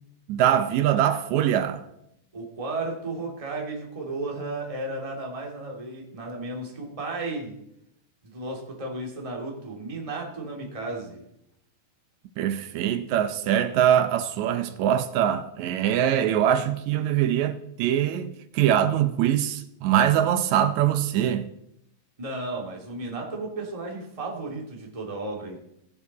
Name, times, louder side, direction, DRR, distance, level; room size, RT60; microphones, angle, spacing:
voice 1, 0.3-1.8 12.4-21.4, right 10 dB, 80° right, 1.6 m, -23 dB
voice 2, 2.3-7.6 8.2-11.3 22.2-25.6, right 2 dB, 15° right, 1.5 m, -34 dB
19.5 x 7.0 x 4.1 m
omnidirectional pair, 4.1 m